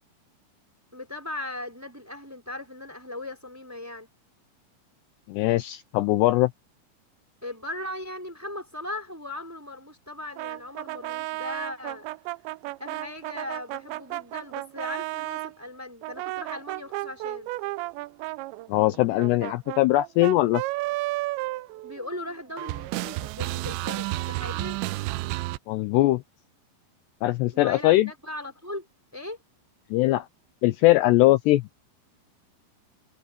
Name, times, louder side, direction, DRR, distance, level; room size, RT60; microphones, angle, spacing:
voice 1, 0.9-4.1 7.4-12.1 12.8-17.5 21.8-24.8 27.5-28.9 29.1-29.4, left 2 dB, 5° right, 3.6 m, -38 dB
voice 2, 5.3-6.5 18.7-20.6 25.7-26.2 27.2-28.1 29.9-30.3 30.6-31.6, left 17 dB, 80° left, 2.6 m, -21 dB
sound 1, 10.4-15.5 16.0-22.3 22.6-25.6, right 19 dB, 80° right, 2.8 m, -32 dB
omnidirectional pair, 5.3 m